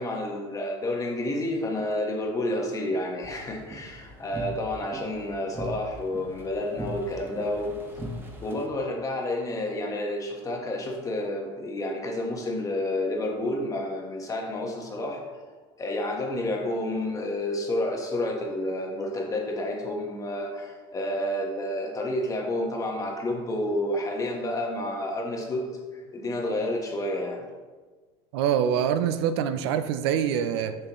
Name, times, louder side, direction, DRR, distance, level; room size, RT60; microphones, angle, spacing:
voice 1, 0.0-7.7 8.4-15.2 15.8-27.4, left 1 dB, 25° left, 1 dB, 1.3 m, -30 dB
sound 1, 3.2-8.7, equal, 15° right, 1.0 m, -40 dB
voice 2, 28.3-30.8, right 8 dB, 85° right, 10 dB, 0.5 m, -25 dB
6.8 x 5.5 x 3.0 m, 1.4 s
supercardioid pair, 115°, 13 cm